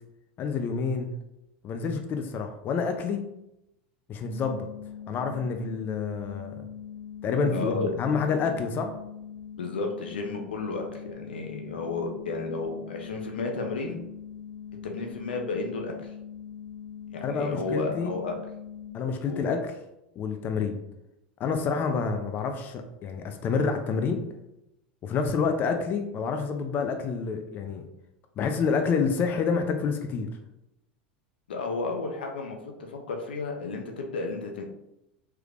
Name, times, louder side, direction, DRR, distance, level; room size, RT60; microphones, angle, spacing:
voice 1, 0.4-1.1 1.6-3.2 4.1-4.7 5.1-6.6 7.2-9.0 17.2-18.2 18.9-19.8 20.2-20.8 21.4-24.2 25.0-27.8 28.4-30.3, left 5 dB, 40° left, 6 dB, 0.4 m, -28 dB
sound 1, 4.2-18.9, left 8 dB, 60° right, 1.4 m, -42 dB
voice 2, 7.5-7.9 9.6-14.0 14.8-16.1 17.1-18.3 19.3-19.5 31.5-34.6, left 3 dB, 85° left, 2 dB, 0.6 m, -32 dB
3.3 x 3.1 x 2.4 m, 0.86 s
hypercardioid pair, 100°, 5 cm